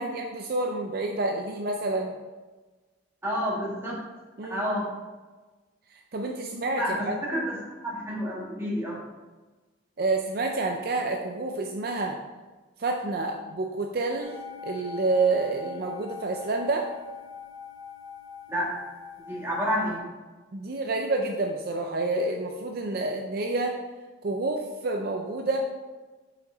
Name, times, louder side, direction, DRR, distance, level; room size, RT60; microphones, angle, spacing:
voice 1, 0.0-2.2 4.4-4.7 5.9-7.2 10.0-12.2 12.8-14.4 14.6-16.9 20.5-23.8 24.2-25.6, right 3 dB, 50° right, 2 dB, 0.5 m, -28 dB
voice 2, 3.2-4.0 4.5-4.9 6.8-7.6 7.8-9.0 18.5-18.7 19.3-20.0, equal, 15° right, -6 dB, 1.9 m, -29 dB
sound 1, 14.2-20.0, left 6 dB, 5° left, 2.2 m, -43 dB
5.9 x 5.8 x 3.9 m, 1.3 s
head